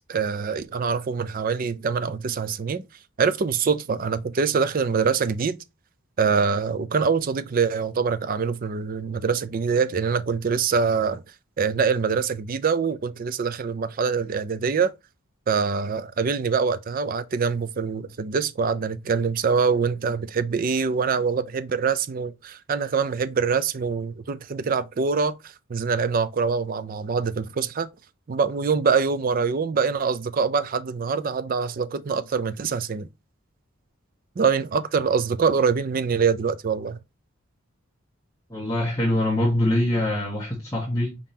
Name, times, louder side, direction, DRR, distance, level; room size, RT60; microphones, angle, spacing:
voice 1, 0.1-2.8 3.2-5.6 6.2-11.2 11.6-14.9 15.5-27.9 28.3-33.1 34.4-37.0, right 5 dB, 40° right, 0.4 m, -24 dB
voice 2, 38.5-41.2, left 1 dB, 15° left, 1.1 m, -24 dB
5.0 x 3.7 x 2.8 m
head